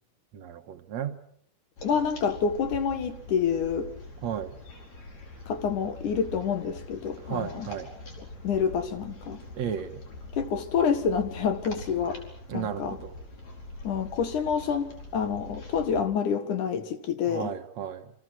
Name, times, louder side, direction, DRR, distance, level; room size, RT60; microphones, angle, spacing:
voice 1, 0.3-1.2 4.2-4.5 7.2-7.9 9.6-10.0 12.5-13.1 17.2-18.1, right 8 dB, 60° right, 7 dB, 2.0 m, -34 dB
voice 2, 1.8-3.9 5.5-7.7 8.4-9.4 10.3-12.2 12.5-13.0 13.8-17.5, left 6 dB, 60° left, 10 dB, 2.8 m, -28 dB
sound 1, 1.8-16.0, left 2 dB, 45° left, 5.7 m, -44 dB
28.5 x 26.0 x 6.3 m, 0.68 s
omnidirectional pair, 4.3 m